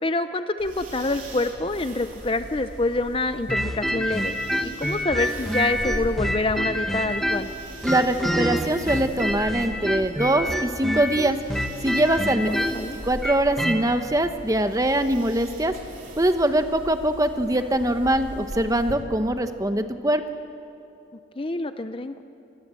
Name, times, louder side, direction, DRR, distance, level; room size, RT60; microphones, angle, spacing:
voice 1, 0.0-7.5 12.2-13.0 21.4-22.2, left 2 dB, 25° left, 10 dB, 0.6 m, -27 dB
sound 1, 0.6-19.0, equal, 40° right, 3.5 m, -40 dB
sound 2, 3.5-7.5 7.8-13.8, equal, ahead, 1.3 m, -27 dB
voice 2, 7.8-11.4 11.8-12.5 13.0-15.7 16.2-20.2, right 1 dB, 15° right, 8 dB, 0.9 m, -23 dB
27.5 x 19.5 x 7.7 m, 2.8 s
head